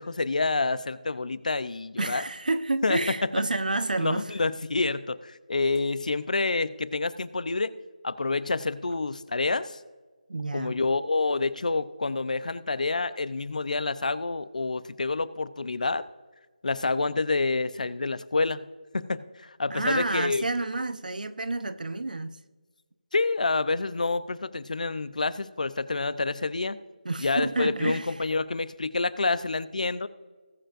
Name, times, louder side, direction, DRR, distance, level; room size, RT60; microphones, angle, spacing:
voice 1, 0.0-2.2 2.8-3.0 4.0-7.7 8.0-9.8 10.5-16.1 16.6-18.6 18.9-20.4 23.1-26.8 27.2-30.1, left 3 dB, 65° left, 0.6 m, -28 dB
voice 2, 2.0-4.3 10.3-10.8 19.7-22.3 27.0-28.1, right 2 dB, 80° right, 0.8 m, -29 dB
19.5 x 7.7 x 2.5 m
figure-of-eight pair, 165°, 4 cm